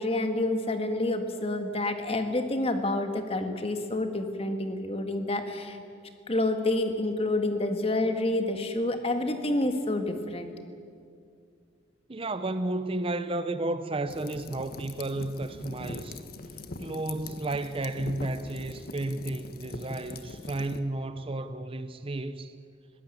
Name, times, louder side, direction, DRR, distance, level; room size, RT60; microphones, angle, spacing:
voice 1, 0.0-5.8 6.3-10.5, left 2 dB, 30° left, 1.7 m, -28 dB
voice 2, 12.1-16.2 16.8-22.5, right 2 dB, 30° right, 0.6 m, -32 dB
sound 1, 14.1-20.8, left 2 dB, 50° left, 1.1 m, -42 dB
21.0 x 17.0 x 8.5 m
head